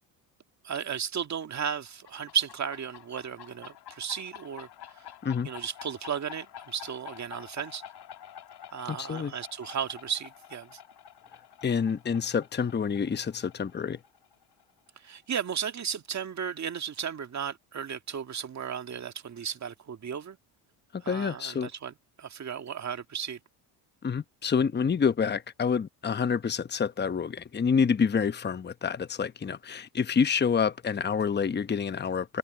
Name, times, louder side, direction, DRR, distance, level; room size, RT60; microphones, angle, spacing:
voice 1, 0.6-4.7 4.9-5.1 5.4-7.8 8.7-10.8 15.0-20.4 21.0-23.4, right 7 dB, 35° right, 1.9 m, -34 dB
sound 1, 1.9-15.2, left 10 dB, 55° left, 2.1 m, -49 dB
voice 2, 8.9-9.3 11.6-14.0 20.9-21.7 24.0-32.4, left 6 dB, 20° left, 1.0 m, -28 dB
supercardioid pair, 85°, 47 cm